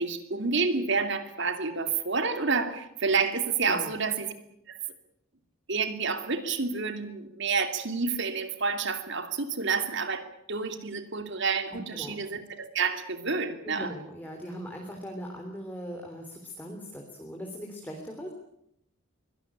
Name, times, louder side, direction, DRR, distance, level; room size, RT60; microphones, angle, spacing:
voice 1, 0.0-4.3 4.7-4.8 5.7-13.9, right 4 dB, 60° right, 9 dB, 2.8 m, -29 dB
voice 2, 11.7-12.2 13.6-18.3, equal, 10° left, 1 dB, 3.4 m, -40 dB
24.0 x 18.0 x 8.7 m, 0.74 s
head